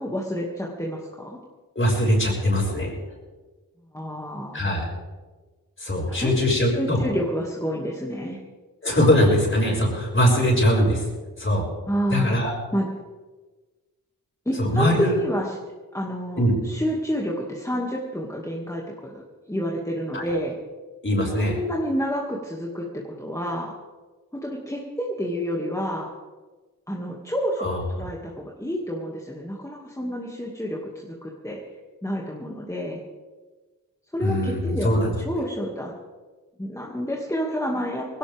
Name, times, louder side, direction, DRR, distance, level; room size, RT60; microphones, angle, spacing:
voice 1, 0.0-1.4 3.9-4.7 6.1-6.4 6.8-8.4 11.9-12.3 12.7-12.9 14.5-15.5 15.9-20.5 21.4-23.7 24.3-26.1 26.9-27.7 27.9-31.6 32.0-33.0 34.1-35.0 35.3-35.9 36.6-38.2, equal, 10° left, -2 dB, 2.3 m, -29 dB
voice 2, 1.7-2.9 4.5-4.8 5.8-7.0 8.8-11.0 11.4-11.6 12.1-12.5 14.6-15.1 16.4-16.5 20.1-20.3 21.0-21.6 27.6-27.8 34.2-35.1, equal, 35° left, -2 dB, 6.4 m, -21 dB
19.5 x 17.5 x 3.6 m, 1.3 s
cardioid pair, 60°, 34 cm